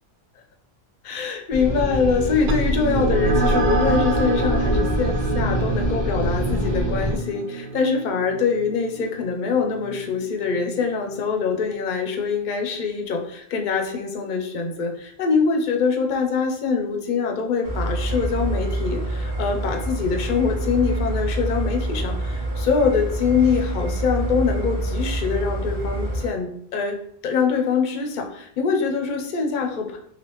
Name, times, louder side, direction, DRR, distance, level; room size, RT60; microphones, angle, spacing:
voice 1, 1.0-27.0 27.2-30.0, left 5 dB, 55° left, 4 dB, 0.6 m, -24 dB
sound 1, 1.5-7.2, equal, 15° right, 1.0 m, -25 dB
sound 2, 2.5-11.3, right 3 dB, 60° right, 0.6 m, -27 dB
sound 3, 17.6-26.3, right 2 dB, 75° right, 1.1 m, -27 dB
3.3 x 2.4 x 3.0 m, 0.68 s
omnidirectional pair, 1.1 m